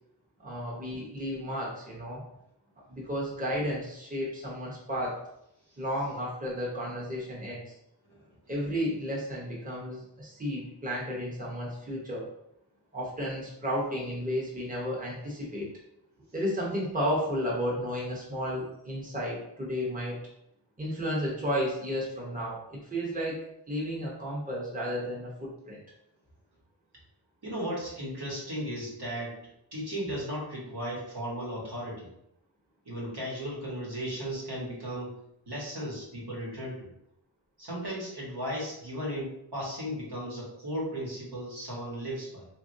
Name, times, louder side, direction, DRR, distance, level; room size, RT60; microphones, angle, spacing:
voice 1, 0.4-2.2 2.9-5.2 5.8-7.7 8.5-12.3 12.9-15.7 16.3-20.2 20.8-25.8, equal, 20° right, -5 dB, 0.9 m, -33 dB
voice 2, 27.4-29.4 29.7-32.1 32.8-35.1 35.5-36.9 37.6-42.4, equal, 65° right, -5 dB, 1.3 m, -35 dB
3.0 x 2.6 x 2.6 m, 0.80 s
wide cardioid pair, 50°, 42 cm